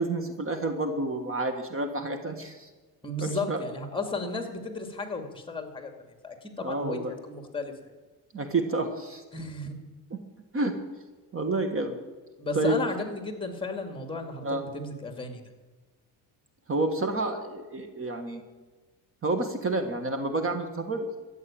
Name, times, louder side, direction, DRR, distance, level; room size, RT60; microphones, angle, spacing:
voice 1, 0.0-2.7 3.2-3.6 6.6-7.1 8.3-9.2 10.1-10.2 10.5-10.7 11.3-12.0 12.5-12.8 14.4-14.6 16.7-18.4 19.2-21.1, right 2 dB, 35° right, 7 dB, 1.7 m, -29 dB
voice 2, 3.0-5.9 6.2-7.7 9.3-9.8 12.4-15.4, left 2 dB, 15° left, 5 dB, 2.3 m, -34 dB
14.0 x 8.7 x 8.9 m, 1.2 s
cardioid pair, 115°, 39 cm